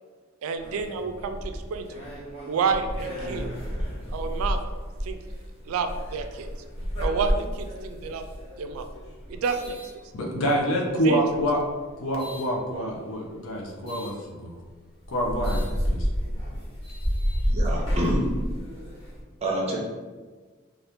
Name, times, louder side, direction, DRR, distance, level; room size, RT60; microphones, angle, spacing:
voice 1, 0.4-1.9 2.4-3.5 4.1-4.6 5.0-5.2 5.7-6.5 7.0-8.2 8.6-8.9 9.3-9.8 11.0-11.4, right 5 dB, 80° right, 8 dB, 0.3 m, -29 dB
sound 1, 0.6-10.6 11.2-12.5 13.9-14.1 14.7-14.8 15.0-19.2, equal, 25° left, 1.0 m, -31 dB
voice 2, 10.1-11.6 12.0-14.6 15.1-16.1, equal, 75° left, -1 dB, 0.6 m, -27 dB
voice 3, 17.5-18.3 19.4-19.8, right 1 dB, 30° right, -2 dB, 0.6 m, -27 dB
2.8 x 2.4 x 3.4 m, 1.4 s
head